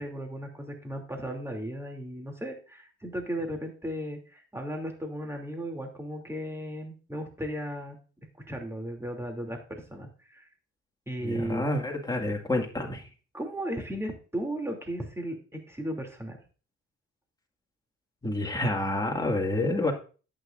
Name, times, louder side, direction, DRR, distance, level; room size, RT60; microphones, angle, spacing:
voice 1, 0.0-8.0 8.5-10.4 11.1-11.6 13.3-16.4, equal, 10° right, 2 dB, 2.7 m, -35 dB
voice 2, 11.2-13.0 18.2-19.9, left 2 dB, 15° left, 1 dB, 2.0 m, -28 dB
11.5 x 8.4 x 2.5 m, 0.37 s
cardioid pair, 90°, 30 cm